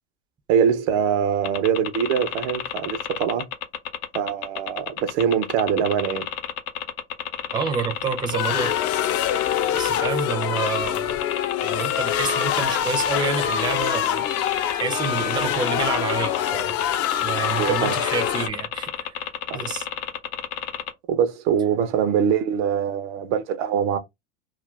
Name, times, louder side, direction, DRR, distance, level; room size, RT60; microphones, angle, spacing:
voice 1, 0.5-3.5 4.1-6.3 17.6-18.0 19.5-19.6 21.1-24.0, right 8 dB, 70° right, 0.7 m, -23 dB
sound 1, 1.4-20.9, left 10 dB, 80° left, 0.7 m, -31 dB
voice 2, 7.5-8.8 9.7-11.2 11.6-14.3 14.7-16.8 17.2-19.9, right 6 dB, 15° right, 0.4 m, -29 dB
sound 2, 8.3-18.5, left 10 dB, 40° left, 0.5 m, -25 dB
2.4 x 2.2 x 3.2 m
supercardioid pair, 110°, 36 cm